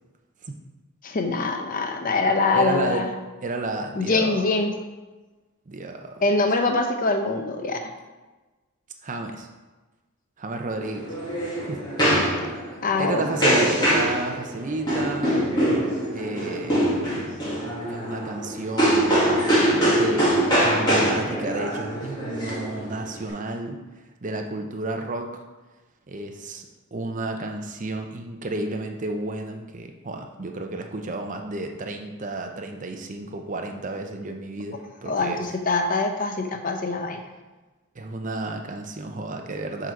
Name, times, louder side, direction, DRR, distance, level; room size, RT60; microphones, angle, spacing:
voice 1, 1.0-3.1 4.0-4.7 6.2-7.8 12.8-13.2 35.1-37.2, left 3 dB, 40° left, 5 dB, 0.7 m, -23 dB
voice 2, 2.5-3.1 3.4-4.6 5.7-6.2 9.0-9.5 10.4-11.2 11.7-11.9 12.7-15.4 16.1-17.2 17.9-20.4 20.6-23.8 24.2-25.4 26.1-35.5 37.9-39.9, right 2 dB, 35° right, 4 dB, 0.6 m, -32 dB
sound 1, 10.8-23.3, equal, 20° left, 1.9 m, -23 dB
7.5 x 3.9 x 4.6 m, 1.2 s
head